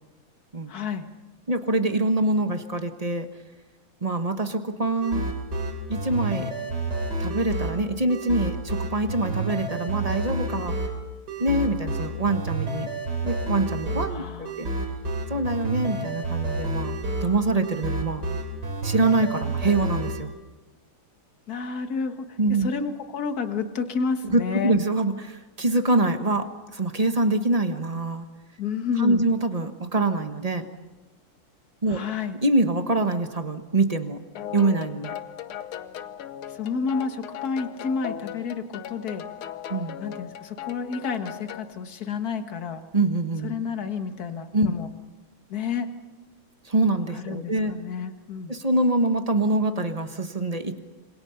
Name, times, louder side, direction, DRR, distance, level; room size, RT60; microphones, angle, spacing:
voice 1, 0.7-1.1 14.1-14.6 21.5-24.8 28.6-29.3 31.9-32.4 36.5-39.3 40.0-42.8 43.4-44.9 45.5-45.9 47.1-48.5, left 5 dB, 50° left, 7 dB, 1.9 m, -30 dB
voice 2, 1.5-3.3 4.0-5.3 5.9-6.5 7.2-10.7 11.4-12.9 13.2-14.7 15.3-16.9 17.2-18.2 18.8-20.3 22.4-22.7 24.3-28.3 29.0-30.7 31.8-32.0 32.4-34.2 34.5-35.1 39.7-40.0 42.9-43.5 44.5-44.7 46.6-47.7 48.5-50.8, right 2 dB, 20° right, 7 dB, 1.2 m, -24 dB
sound 1, 5.0-20.2, right 2 dB, 50° right, 3.5 m, -30 dB
sound 2, 34.4-41.7, left 10 dB, 85° left, 1.8 m, -38 dB
27.0 x 25.0 x 5.8 m, 1.1 s
omnidirectional pair, 2.3 m